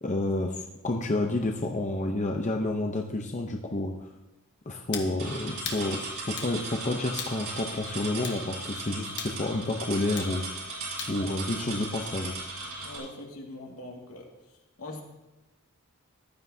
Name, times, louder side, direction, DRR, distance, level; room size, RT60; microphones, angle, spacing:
voice 1, 0.0-4.1 4.7-10.5 11.1-12.4, left 2 dB, 35° left, 2 dB, 0.7 m, -30 dB
sound 1, 4.9-5.1 5.6-5.9 6.4-6.5 7.2-7.4 8.2-8.4 9.2-9.4 10.2-10.3 11.0-11.2, left 7 dB, 50° left, 1.3 m, -37 dB
sound 2, 5.2-13.0, right 2 dB, 60° right, 3.8 m, -37 dB
voice 2, 12.8-14.3 14.8-15.0, left 1 dB, 75° left, 0 dB, 2.1 m, -42 dB
15.0 x 11.5 x 2.8 m, 1.0 s
head